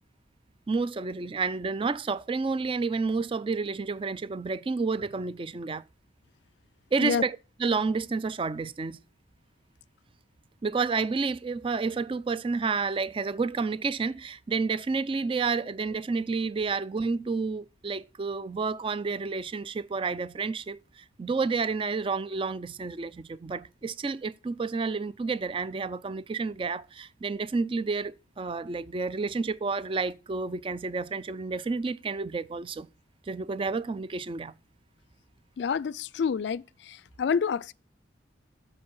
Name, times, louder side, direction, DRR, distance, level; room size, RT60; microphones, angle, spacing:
voice 1, 0.7-5.8 6.9-9.0 10.6-32.9 33.3-34.5, right 4 dB, 30° right, 0.4 m, -30 dB
voice 2, 35.6-37.7, left 6 dB, 65° left, 0.3 m, -28 dB
7.8 x 4.3 x 5.5 m
head